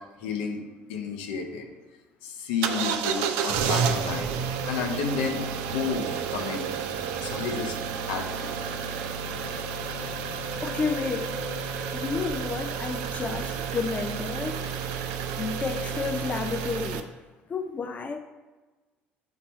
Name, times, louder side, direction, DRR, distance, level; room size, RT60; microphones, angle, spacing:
voice 1, 0.2-0.6 0.9-1.7 2.2-4.3 4.7-6.7 7.2-7.8 8.0-8.5, left 6 dB, 65° left, 0.9 m, -31 dB
sound 1, 2.6-17.0, right 6 dB, 60° right, 0.5 m, -31 dB
voice 2, 10.6-11.4 11.9-14.6 15.4-17.1 17.5-18.2, left 5 dB, 25° left, 0.4 m, -31 dB
7.3 x 4.1 x 4.3 m
figure-of-eight pair, 60°, 6 cm